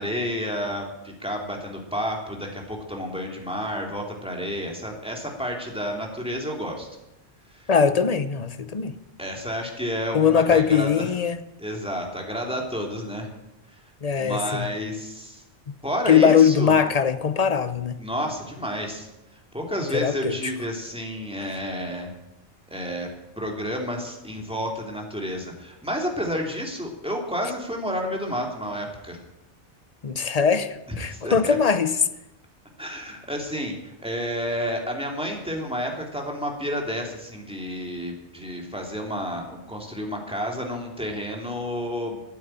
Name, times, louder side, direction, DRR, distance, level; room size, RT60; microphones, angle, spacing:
voice 1, 0.0-6.9 7.5-7.7 9.2-11.1 11.6-13.3 14.2-15.4 15.8-16.8 18.0-19.1 19.5-22.1 22.7-29.2 30.9-31.6 32.8-42.2, equal, 5° right, 2.8 m, -30 dB
voice 2, 7.7-9.0 10.1-11.4 14.0-14.7 15.7-15.8 16.1-18.0 19.9-20.5 30.0-31.9, left 7 dB, 40° left, 0.8 m, -21 dB
13.0 x 9.2 x 9.0 m
omnidirectional pair, 1.1 m